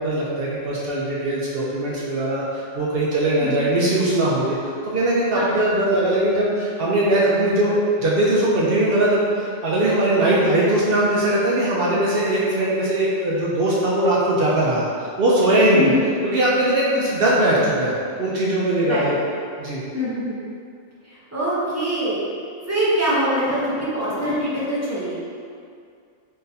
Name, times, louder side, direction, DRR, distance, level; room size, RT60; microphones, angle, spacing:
voice 1, 0.0-15.9 16.2-19.1 19.6-19.8, right 1 dB, 60° right, -6 dB, 0.7 m, -20 dB
voice 2, 3.4-3.7 5.3-5.6 15.7-16.1 17.1-17.2 18.8-19.1 19.9-20.4 21.0-22.2 22.7-25.2, equal, 20° right, -10 dB, 0.5 m, -24 dB
3.7 x 2.5 x 2.7 m, 2.3 s
omnidirectional pair, 1.2 m